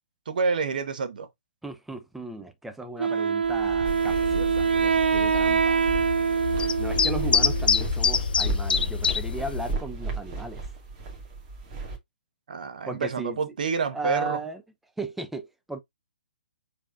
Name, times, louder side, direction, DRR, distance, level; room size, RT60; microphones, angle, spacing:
voice 1, 0.3-1.3 12.5-14.4, right 5 dB, 60° right, 1.3 m, -28 dB
voice 2, 1.6-5.8 6.8-10.6 12.9-13.4 13.9-14.6 15.0-15.8, right 2 dB, 5° right, 0.8 m, -36 dB
Wind instrument woodwind instrument, 3.0-7.8, right 6 dB, 80° right, 0.3 m, -24 dB
sound 1, 3.4-12.0, right 4 dB, 30° right, 2.4 m, -36 dB
sound 2, 3.9-9.7, left 6 dB, 70° left, 0.6 m, -27 dB
4.8 x 4.3 x 2.6 m
figure-of-eight pair, 135°, 5 cm